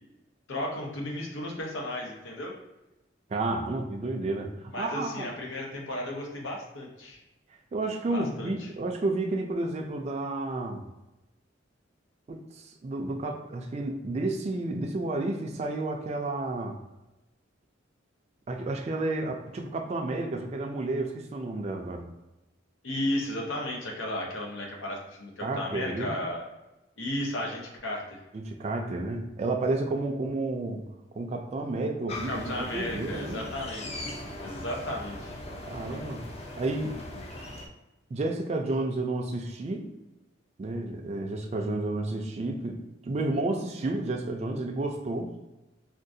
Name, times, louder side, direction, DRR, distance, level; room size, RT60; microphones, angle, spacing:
voice 1, 0.5-2.5 4.7-7.2 8.1-8.7 22.8-26.4 27.0-28.2 32.3-34.1 34.4-35.4, left 1 dB, 90° left, 0 dB, 0.8 m, -34 dB
voice 2, 3.3-5.3 7.7-10.8 12.3-16.8 18.5-22.1 25.4-26.2 28.3-30.8 31.1-33.4 35.7-36.2 36.6-37.0 38.1-39.9 40.6-45.3, right 2 dB, 35° right, 2 dB, 0.3 m, -31 dB
sound 1, 32.1-37.7, left 1 dB, 35° left, 0.4 m, -40 dB
3.6 x 2.3 x 2.6 m, 0.98 s
head